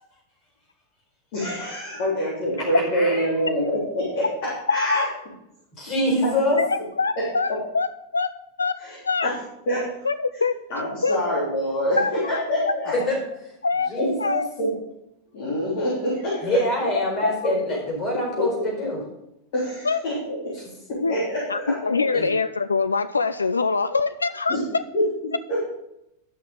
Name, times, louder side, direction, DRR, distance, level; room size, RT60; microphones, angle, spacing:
voice 1, 1.3-4.2 4.7-5.0 6.2-6.3 7.2-7.3 8.8-9.0 9.2-9.3 9.7-9.8 10.7-12.9 14.0-14.1 14.6-14.7 15.3-16.6 18.4-18.5 19.5-20.4 20.9-21.6 21.9-22.1 24.5-24.6 24.9-25.0 25.5-25.6, equal, 50° left, -6 dB, 3.6 m, -25 dB
voice 2, 2.7-3.2 5.8-6.6 12.9-13.2 13.9-14.4 16.4-19.0 22.1-22.3, left 1 dB, 30° left, 0 dB, 4.5 m, -25 dB
voice 3, 4.7-5.1 6.6-9.3 10.0-10.6 11.0-11.2 12.0-12.7 13.6-13.9 14.2-14.5 17.0-17.4 19.8-20.3 21.0-21.2 21.5-24.8, left 4 dB, 75° left, 12 dB, 0.3 m, -24 dB
11.5 x 6.1 x 5.1 m, 0.85 s
figure-of-eight pair, 90°, 0 cm